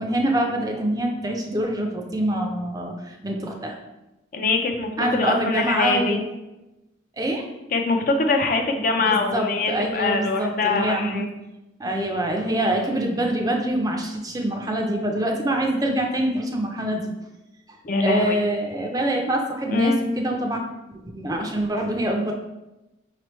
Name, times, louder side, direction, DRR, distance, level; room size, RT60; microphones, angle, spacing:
voice 1, 0.0-3.8 5.0-6.2 7.2-7.4 9.0-11.2 11.8-17.1 18.0-20.6 21.1-22.3, right 1 dB, 20° right, 2 dB, 0.4 m, -25 dB
voice 2, 4.3-6.2 7.7-11.2 17.8-18.4 19.7-20.0, left 3 dB, 50° left, 4 dB, 0.5 m, -23 dB
5.2 x 3.3 x 3.0 m, 0.99 s
head